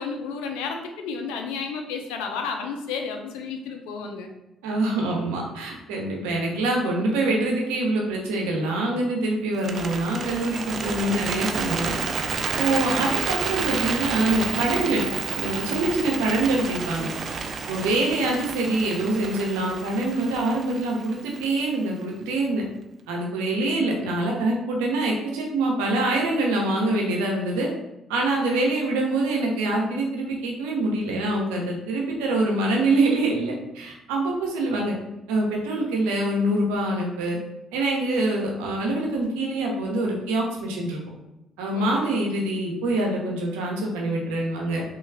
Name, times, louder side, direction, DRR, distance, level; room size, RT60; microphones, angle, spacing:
voice 1, 0.0-4.3 41.7-42.0, left 5 dB, 85° left, 4 dB, 0.4 m, -32 dB
voice 2, 4.6-12.0 12.6-15.0 15.3-17.1 17.7-22.6 23.1-27.7 28.1-34.9 35.3-37.4 37.7-41.0 41.6-44.8, right 2 dB, 90° right, 0 dB, 0.7 m, -25 dB
Bird, 9.5-21.7, right 5 dB, 55° right, 0.3 m, -30 dB
3.2 x 2.3 x 3.3 m, 0.92 s
supercardioid pair, 65°, 0 cm